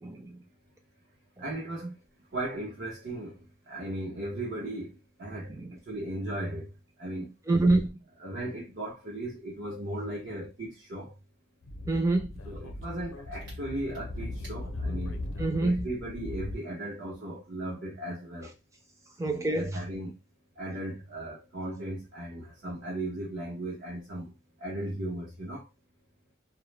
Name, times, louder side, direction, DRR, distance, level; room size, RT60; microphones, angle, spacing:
voice 1, 0.0-0.4 1.8-1.9 5.5-5.8 7.5-8.0 11.9-12.4 15.4-15.9 19.2-19.8, right 2 dB, 15° right, 0.5 m, -27 dB
voice 2, 1.4-1.9 2.3-6.7 7.0-7.3 8.2-11.1 12.5-15.2 15.6-18.5 19.2-20.1 20.6-25.7, right 1 dB, 60° right, 0.9 m, -37 dB
Speech / Wind, 11.6-16.6, left 2 dB, 80° left, 0.6 m, -38 dB
2.2 x 2.1 x 3.1 m
head